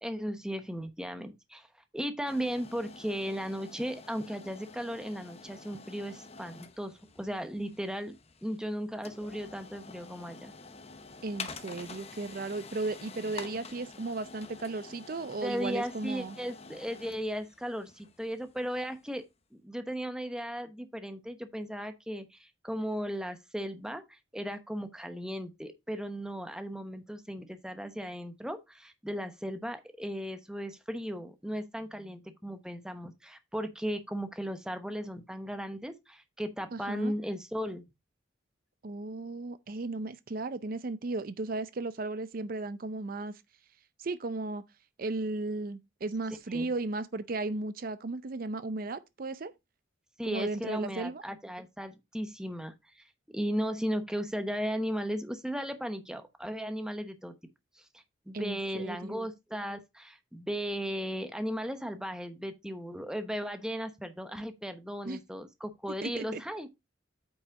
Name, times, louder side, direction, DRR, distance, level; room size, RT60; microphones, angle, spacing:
voice 1, 0.0-1.7 1.9-8.1 8.4-10.5 15.4-19.2 19.5-37.8 46.5-46.7 50.2-57.3 57.8-66.7, equal, 5° right, 0.9 m, -36 dB
sound 1, 2.3-19.1, left 4 dB, 35° left, 0.9 m, -48 dB
voice 2, 11.2-16.4 36.7-37.1 38.8-43.4 44.0-44.6 45.0-49.5 50.2-51.2 58.3-59.2 65.1-65.2 66.0-66.4, right 3 dB, 50° right, 0.5 m, -35 dB
8.7 x 5.0 x 4.0 m
head